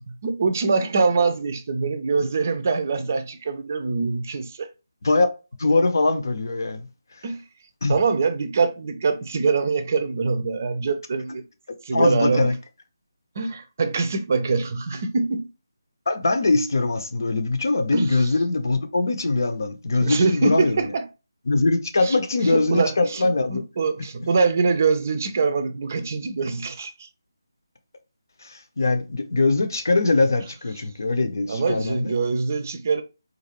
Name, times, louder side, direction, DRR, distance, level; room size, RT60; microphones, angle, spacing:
voice 1, 0.0-4.7 7.2-7.4 7.9-11.4 11.8-12.5 13.4-15.5 17.9-18.1 20.0-21.0 22.0-27.1 31.5-33.0, right 4 dB, 40° right, 0.5 m, -24 dB
voice 2, 5.6-6.8 7.8-8.0 11.9-12.5 16.1-20.9 21.5-23.6 28.4-32.1, left 3 dB, 55° left, 0.7 m, -22 dB
4.1 x 2.6 x 2.9 m
figure-of-eight pair, 155°, 2 cm